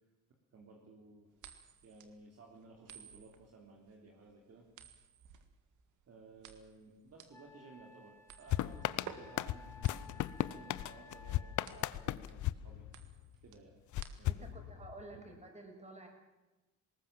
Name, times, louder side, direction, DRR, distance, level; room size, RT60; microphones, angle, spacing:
voice 1, 0.5-1.3 1.6-4.6 6.1-12.9 13.4-13.8 14.2-14.8 15.1-15.2, right 3 dB, 55° right, 0 dB, 3.4 m, -57 dB
sound 1, 1.4-14.6, right 8 dB, 80° right, 2.0 m, -55 dB
Wind instrument woodwind instrument, 7.3-11.9, left 2 dB, 10° left, 5.2 m, -57 dB
sound 2, 8.5-13.4 13.9-15.2, left 14 dB, 75° left, 0.7 m, -37 dB
voice 2, 14.2-16.1, right 2 dB, 20° right, 3 dB, 6.4 m, -51 dB
20.0 x 18.5 x 7.5 m, 1.1 s
cardioid pair, 90°, 30 cm